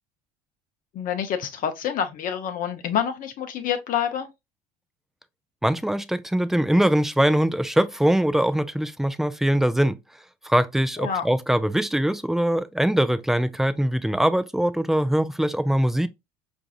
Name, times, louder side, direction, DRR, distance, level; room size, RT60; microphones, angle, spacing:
voice 1, 0.9-4.3 11.0-11.2, left 8 dB, 50° left, 0.6 m, -27 dB
voice 2, 5.6-10.0 10.4-16.1, right 1 dB, ahead, 0.3 m, -22 dB
4.6 x 2.6 x 2.4 m
supercardioid pair, 90°, 18 cm